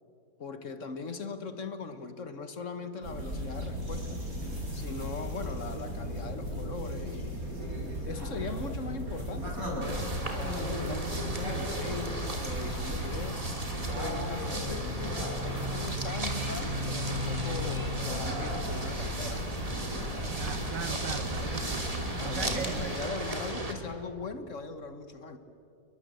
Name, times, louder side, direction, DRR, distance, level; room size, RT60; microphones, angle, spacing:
voice 1, 0.4-4.2 4.7-7.5 8.0-13.4 13.9-20.2 22.2-25.4, left 4 dB, 45° left, 9 dB, 1.6 m, -40 dB
sound 1, 3.0-23.0, equal, 50° right, 6.9 m, -36 dB
sound 2, 9.8-23.7, equal, 20° right, 2.8 m, -35 dB
voice 2, 20.4-21.9 22.2-23.2, right 9 dB, 80° right, 14 dB, 1.6 m, -39 dB
29.5 x 22.5 x 7.9 m, 2.8 s
omnidirectional pair, 1.9 m